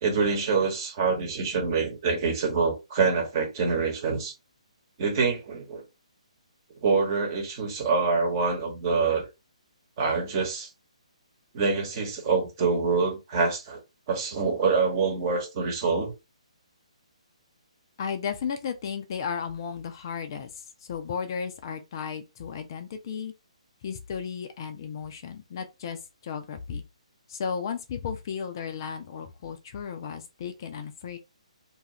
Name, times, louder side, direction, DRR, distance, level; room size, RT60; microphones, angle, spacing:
voice 1, 0.0-4.3 5.0-5.8 6.8-9.3 10.0-10.7 11.5-13.8 14.1-16.1, right 4 dB, 30° right, 1.0 m, -25 dB
voice 2, 18.0-23.3 23.8-26.8 27.3-31.2, left 6 dB, 35° left, 0.4 m, -34 dB
2.6 x 2.4 x 3.0 m
figure-of-eight pair, 135°, 4 cm